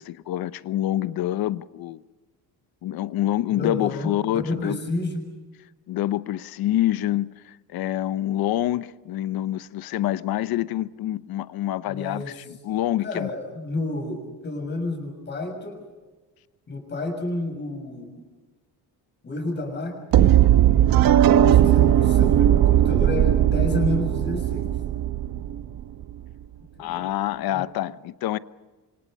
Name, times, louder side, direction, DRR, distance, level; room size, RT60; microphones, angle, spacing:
voice 1, 0.0-2.0 2.8-4.8 5.9-13.3 26.8-28.4, left 13 dB, 65° left, 0.9 m, -26 dB
voice 2, 3.5-5.2 11.9-12.3 13.0-15.8 16.7-18.1 19.2-20.4 21.3-24.7 26.8-27.0 27.5-27.6, left 2 dB, 25° left, 6.6 m, -30 dB
sound 1, 20.1-26.1, right 11 dB, 60° right, 1.1 m, -18 dB
28.0 x 26.0 x 5.4 m
cardioid pair, 165°, 40 cm